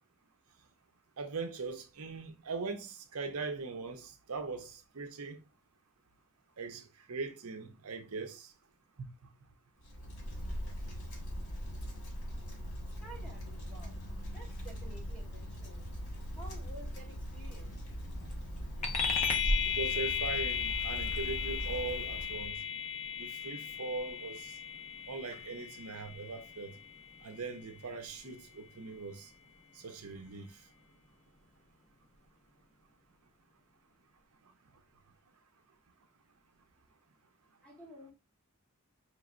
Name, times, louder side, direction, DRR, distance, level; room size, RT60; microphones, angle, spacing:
voice 1, 1.2-5.4 6.6-8.5 9.0-9.1 19.7-22.6 23.2-24.5 25.1-26.7 27.2-29.3 29.7-30.6, right 4 dB, 80° right, 0.7 m, -40 dB
Wind, 9.8-22.6, equal, 70° left, 1.6 m, -41 dB
voice 2, 13.0-15.8 16.3-17.8 37.6-38.1, right 1 dB, 5° left, 1.4 m, -52 dB
sound 1, 18.8-28.7, left 5 dB, 30° left, 0.6 m, -35 dB
5.2 x 3.0 x 2.5 m
head